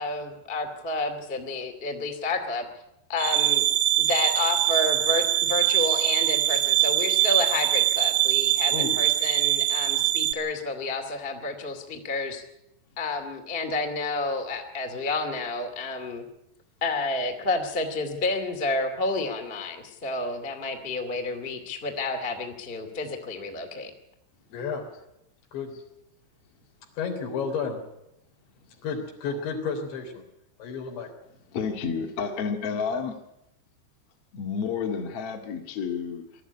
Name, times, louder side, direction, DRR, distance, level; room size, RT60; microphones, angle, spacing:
voice 1, 0.0-2.6 3.1-3.7 4.0-12.4 13.0-16.2 16.8-23.9, left 3 dB, 20° left, 4 dB, 1.5 m, -30 dB
sound 1, 3.2-10.3, right 13 dB, 70° right, 2.0 m, -23 dB
voice 2, 24.5-24.8 25.5-25.7 27.0-27.8 28.8-30.2 30.6-31.1, left 5 dB, 75° left, 1 dB, 5.9 m, -31 dB
voice 3, 31.5-33.1 34.3-36.2, left 6 dB, 45° left, 3 dB, 2.4 m, -30 dB
21.5 x 13.5 x 9.8 m, 0.85 s
omnidirectional pair, 5.2 m